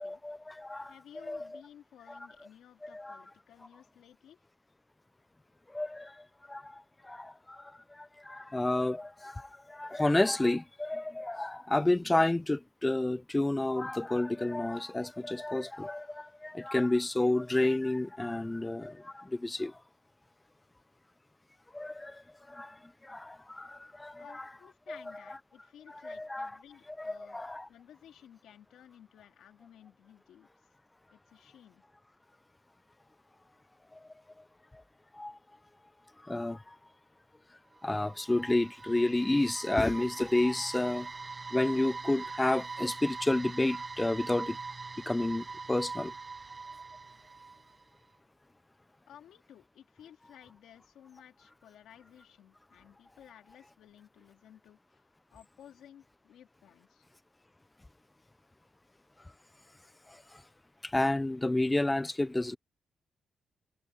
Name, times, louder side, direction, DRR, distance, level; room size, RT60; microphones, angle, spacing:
voice 1, 0.0-0.9 1.3-1.4 2.8-3.2 5.7-19.8 21.7-22.2 22.5-22.8 23.0-24.4 26.0-26.5 27.0-27.7 33.9-34.0 35.1-35.4 36.2-36.7 37.8-41.1 41.5-44.6 45.1-46.1 60.8-62.6, left 2 dB, 15° left, 0.5 m, -30 dB
voice 2, 0.9-4.4 24.2-27.4 27.7-30.5 31.1-31.8 49.1-57.0, left 10 dB, 85° left, 2.3 m, -56 dB
Dramatic Tension, 37.8-47.8, right 4 dB, 30° right, 0.7 m, -42 dB
cardioid pair, 90°, 0 cm